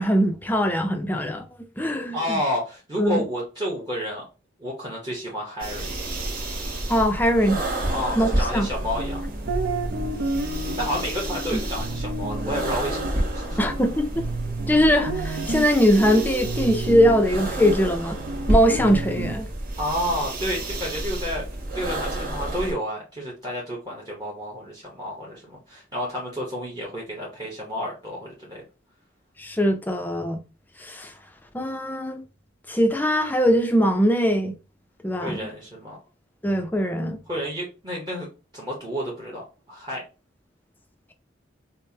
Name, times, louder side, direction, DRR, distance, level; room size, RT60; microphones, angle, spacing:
voice 1, 0.0-1.5 1.8-2.4 3.0-3.2 6.9-7.6 8.2-8.7 11.5-11.6 13.6-14.2 14.7-18.2 18.5-19.5 29.4-30.4 30.8-31.1 31.5-32.2 32.7-34.5 35.0-35.4 36.4-37.2, equal, 10° left, 0.4 m, -21 dB
voice 2, 2.1-4.2 4.6-5.9 7.9-9.2 10.8-13.6 19.8-21.5 21.7-28.6 35.2-36.0 37.3-38.3 38.5-40.0, equal, 25° right, 0.9 m, -30 dB
sound 1, 5.6-22.7, right 1 dB, 45° right, 1.2 m, -30 dB
sound 2, 8.8-19.4, right 2 dB, 65° right, 0.6 m, -32 dB
5.3 x 2.0 x 2.7 m
head